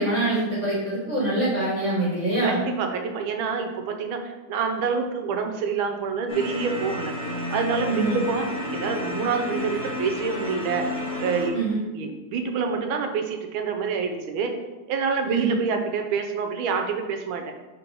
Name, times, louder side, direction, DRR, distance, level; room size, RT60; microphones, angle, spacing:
voice 1, 0.0-2.6 7.9-8.2 11.5-11.8 15.3-15.6, right 2 dB, 35° right, -9 dB, 1.9 m, -24 dB
voice 2, 2.4-7.1 7.5-10.8 11.2-11.6 11.9-14.5 14.9-17.4, right 5 dB, 80° right, 5 dB, 1.5 m, -27 dB
sound 1, 6.3-11.5, left 1 dB, 45° left, 2.4 m, -31 dB
4.5 x 4.1 x 5.3 m, 1.2 s
omnidirectional pair, 2.3 m